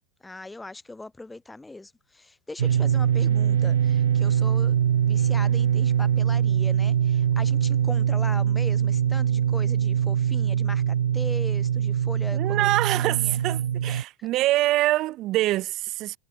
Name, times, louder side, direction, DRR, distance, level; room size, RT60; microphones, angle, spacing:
voice 1, 0.0-4.7 5.1-13.4 13.8-14.3, left 2 dB, 5° left, 3.4 m, -40 dB
sound 1, 2.6-14.0, right 9 dB, 65° right, 0.7 m, -23 dB
voice 2, 12.3-16.2, right 16 dB, 35° right, 1.6 m, -25 dB
figure-of-eight pair, 90°, 0 cm